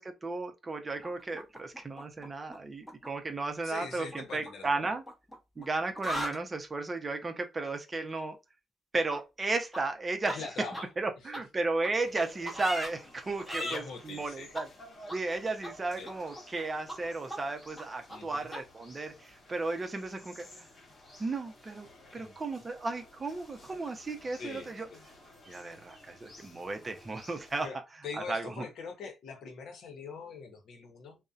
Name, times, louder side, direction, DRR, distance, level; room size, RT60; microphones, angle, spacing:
voice 1, 0.0-5.0 5.6-8.4 8.9-10.5 11.0-14.7 15.1-20.5 21.2-21.9 22.1-24.9 25.5-27.7 28.3-28.7, right 3 dB, 25° right, 0.5 m, -34 dB
sound 1, 1.0-2.6 2.8-3.1 4.1-5.7 5.9-6.4 9.1-9.2 9.7-9.8 10.3-10.4 10.7-10.8 11.3-11.4 11.8-11.9 12.5-12.9 13.4-13.8 14.5-14.6 15.1-15.2 15.6-15.7 16.0-16.6 16.9-17.0 17.3-17.4 17.8-17.9 18.1-18.2 18.5-18.6, equal, 5° left, 0.9 m, -38 dB
voice 2, 3.6-4.8 10.3-10.9 13.6-14.5 16.0-16.1 18.1-18.5 22.2-22.3 24.4-25.0 27.6-27.8 28.0-31.2, left 5 dB, 75° left, 0.7 m, -42 dB
sound 2, 11.9-27.7, left 1 dB, 45° left, 1.2 m, -54 dB
2.6 x 2.0 x 2.3 m
cardioid pair, 110°, 0 cm